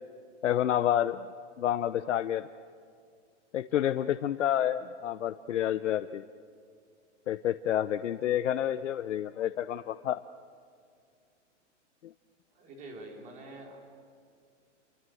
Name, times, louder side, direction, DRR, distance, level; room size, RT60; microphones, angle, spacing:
voice 1, 0.4-1.2 1.6-2.5 3.5-6.2 7.3-10.2, left 11 dB, 75° left, 11 dB, 0.8 m, -29 dB
voice 2, 12.5-14.0, right 2 dB, 20° right, 1 dB, 4.0 m, -46 dB
29.5 x 24.0 x 7.9 m, 2.2 s
hypercardioid pair, 165°, 36 cm